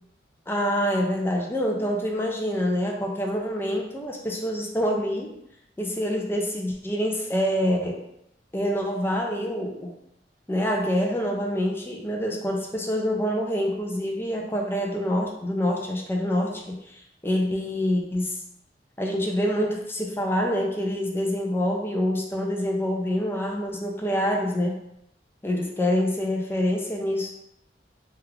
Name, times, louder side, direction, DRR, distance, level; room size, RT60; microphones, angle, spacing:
voice 1, 0.5-5.3 5.8-8.0 8.5-9.9 10.5-18.4 19.0-24.8 25.4-27.3, equal, 15° left, 0 dB, 0.4 m, -26 dB
3.4 x 2.4 x 3.2 m, 0.80 s
head